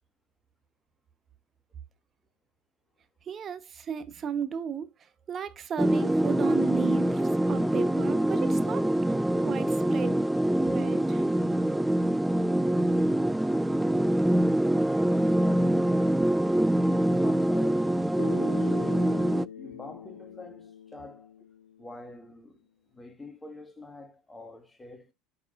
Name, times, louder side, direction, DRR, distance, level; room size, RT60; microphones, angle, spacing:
voice 1, 3.3-4.9 5.3-9.1 9.4-10.1 10.7-11.2, right 8 dB, 35° right, 1.1 m, -34 dB
sound 1, 5.8-19.5, right 1 dB, 5° right, 0.4 m, -25 dB
voice 2, 17.0-19.3 19.5-21.5 21.8-22.6 22.9-25.1, left 2 dB, 15° left, 1.6 m, -44 dB
Bass guitar, 18.2-22.2, left 9 dB, 85° left, 0.4 m, -44 dB
12.0 x 4.9 x 2.5 m
hypercardioid pair, 70°, 0 cm